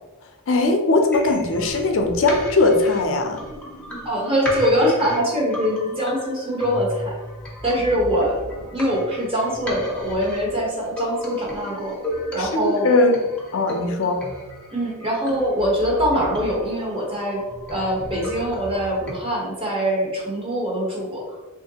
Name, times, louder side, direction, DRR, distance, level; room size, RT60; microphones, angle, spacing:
voice 1, 0.5-3.4 12.4-13.2 13.5-14.2, left 2 dB, 65° left, 4 dB, 0.5 m, -19 dB
sound 1, 1.1-19.1, equal, 5° left, 0.6 m, -35 dB
voice 2, 4.0-7.1 7.6-8.4 8.7-11.9 12.3-12.9 14.7-17.4 17.7-21.4, equal, 25° right, -3 dB, 0.8 m, -23 dB
3.1 x 2.5 x 2.8 m, 1.1 s
head